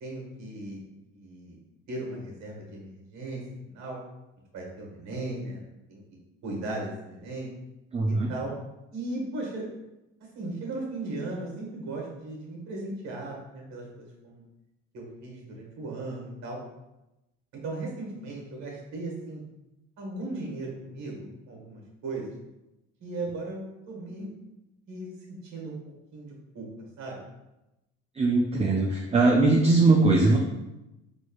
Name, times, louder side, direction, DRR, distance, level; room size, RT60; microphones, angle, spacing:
voice 1, 0.0-0.8 1.1-1.6 1.9-4.0 4.5-6.0 6.4-7.5 8.1-8.5 8.9-9.6 10.3-14.4 14.9-16.6 17.6-19.4 20.0-22.3 23.0-24.3 24.9-25.8 26.1-26.7 27.0-27.2, right 2 dB, 55° right, -1 dB, 1.5 m, -37 dB
voice 2, 7.9-8.3 28.2-30.4, right 3 dB, 20° right, 0 dB, 0.4 m, -21 dB
4.3 x 3.1 x 2.3 m, 0.95 s
supercardioid pair, 85°, 33 cm